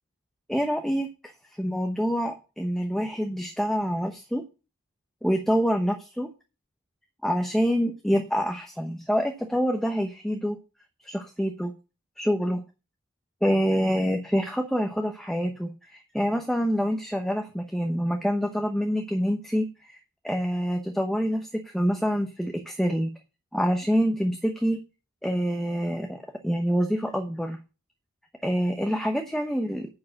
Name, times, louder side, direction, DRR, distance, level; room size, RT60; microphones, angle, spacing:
voice 1, 0.5-1.1 1.6-4.4 5.2-6.3 7.2-10.6 11.0-11.7 12.2-12.6 13.4-23.1 23.5-24.8 25.2-27.6 28.4-29.9, equal, ahead, 3 dB, 0.9 m, -26 dB
11.0 x 4.8 x 8.0 m, 0.31 s
head